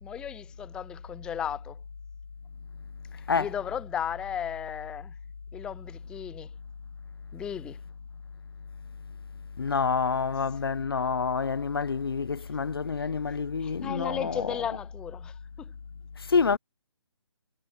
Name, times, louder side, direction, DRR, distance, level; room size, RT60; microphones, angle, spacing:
voice 1, 0.0-1.8 3.1-5.1 5.5-6.5 7.3-7.8 13.6-15.7, left 9 dB, 5° left, 1.3 m, -35 dB
voice 2, 9.6-14.6 16.2-16.6, left 5 dB, 55° left, 3.5 m, -27 dB
hypercardioid pair, 170°, 14 cm